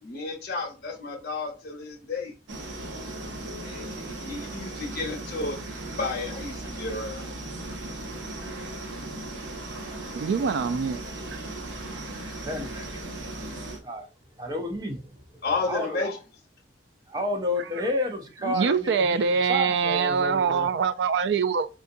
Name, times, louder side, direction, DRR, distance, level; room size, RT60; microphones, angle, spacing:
voice 1, 0.0-2.3 3.6-5.6 6.0-7.3 15.4-16.2, left 3 dB, 55° left, 0.9 m, -32 dB
sound 1, 2.5-13.8, right 2 dB, 80° right, 0.8 m, -37 dB
voice 2, 10.2-11.0 18.4-21.7, right 5 dB, 65° right, 0.3 m, -24 dB
voice 3, 12.3-13.0 13.8-14.1 14.4-15.0 15.7-16.0 17.1-20.7, left 1 dB, 20° right, 0.6 m, -30 dB
3.8 x 2.4 x 2.6 m
head